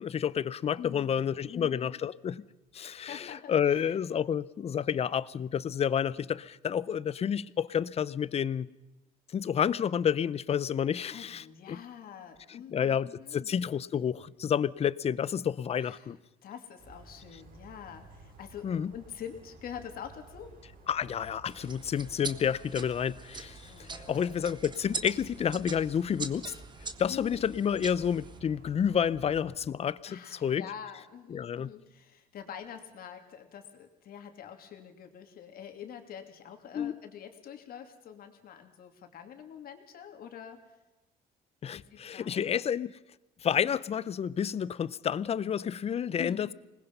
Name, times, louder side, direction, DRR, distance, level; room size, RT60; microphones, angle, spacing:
voice 1, 0.0-2.4 2.7-8.7 9.3-11.8 12.7-16.2 18.6-18.9 20.9-26.5 27.0-30.6 31.3-31.7 36.7-36.9 41.6-42.9 43.4-46.5, left 8 dB, 35° left, 0.6 m, -30 dB
voice 2, 0.8-2.0 2.8-4.0 11.1-13.5 15.8-16.1 16.4-20.5 22.4-22.6 23.6-24.3 27.1-27.4 30.1-40.6 41.7-42.5 46.2-46.5, left 8 dB, 60° left, 2.9 m, -46 dB
sound 1, 16.8-29.5, right 2 dB, 60° right, 5.8 m, -53 dB
sound 2, 21.5-28.4, right 4 dB, 25° right, 1.4 m, -43 dB
26.0 x 20.0 x 5.5 m
cardioid pair, 110°, 17 cm